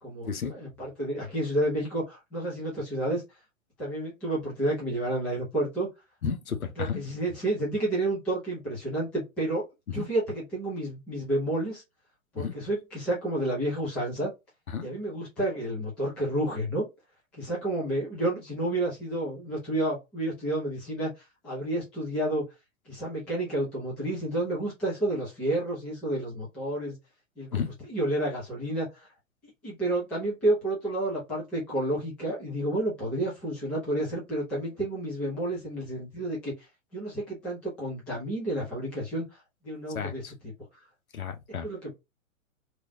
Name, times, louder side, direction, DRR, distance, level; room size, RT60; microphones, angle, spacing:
voice 1, 0.0-3.2 3.8-5.9 6.8-9.7 9.9-11.8 12.3-14.3 14.8-16.8 17.3-22.4 22.9-27.0 27.4-29.1 29.6-36.5 36.9-39.2 39.6-40.2 41.6-41.9, right 1 dB, 5° left, 0.3 m, -30 dB
voice 2, 6.2-7.0 9.9-10.1 12.4-12.6 14.7-14.9 27.5-27.7 39.9-40.3 41.1-41.7, left 7 dB, 80° left, 0.8 m, -32 dB
3.0 x 2.3 x 2.6 m
figure-of-eight pair, 110°, 42 cm